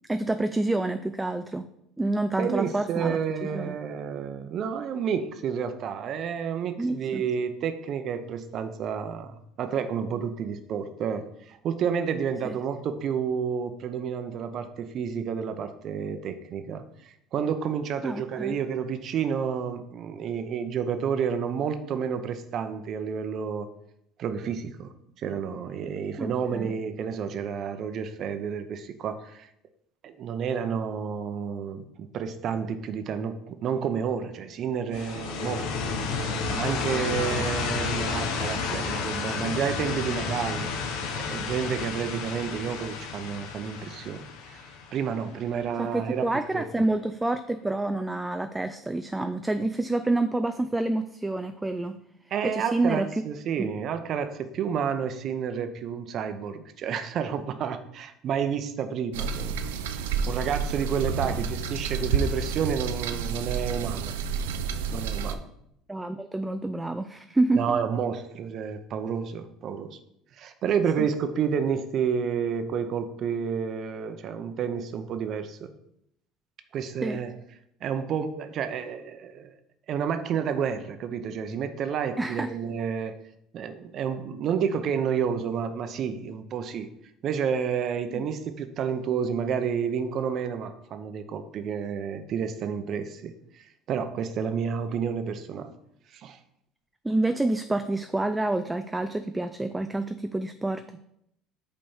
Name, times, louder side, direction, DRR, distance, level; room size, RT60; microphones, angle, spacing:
voice 1, 0.1-1.7 2.0-3.8 6.8-7.2 12.4-12.5 18.0-18.6 26.2-26.7 45.8-52.0 52.4-53.1 53.6-53.7 61.2-61.4 65.9-67.8 71.0-71.1 77.0-77.2 82.2-82.5 88.1-88.2 97.0-100.8, right 2 dB, 10° right, 9 dB, 0.4 m, -28 dB
voice 2, 2.4-23.7 24.2-29.5 30.0-44.6 44.9-46.3 46.5-46.8 52.3-59.6 60.3-64.2 64.9-65.4 67.5-70.0 70.4-75.7 76.7-77.3 77.8-79.5 79.9-83.2 83.5-86.9 87.2-95.7 96.1-96.4, right 7 dB, 55° right, 9 dB, 0.7 m, -30 dB
sound 1, 34.9-45.6, left 4 dB, 75° left, 1.0 m, -31 dB
sound 2, 59.1-65.4, right 6 dB, 85° right, 0.5 m, -30 dB
5.4 x 4.3 x 5.6 m, 0.77 s
hypercardioid pair, 80°, 0 cm